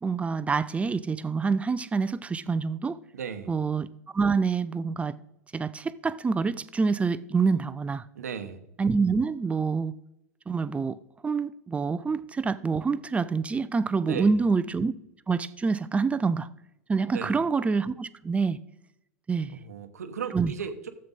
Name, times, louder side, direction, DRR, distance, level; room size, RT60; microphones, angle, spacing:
voice 1, 0.0-3.0 3.5-3.9 4.1-5.2 5.5-8.0 8.8-9.9 10.5-11.0 11.2-14.9 15.3-16.5 16.9-18.6 19.3-19.6 20.3-20.5, right 4 dB, 15° right, 0.5 m, -26 dB
voice 2, 3.1-3.5 8.1-8.6 14.1-14.4 17.1-17.5 19.5-20.9, right 7 dB, 85° right, 0.9 m, -36 dB
13.5 x 7.7 x 4.0 m
hypercardioid pair, 90°, 8 cm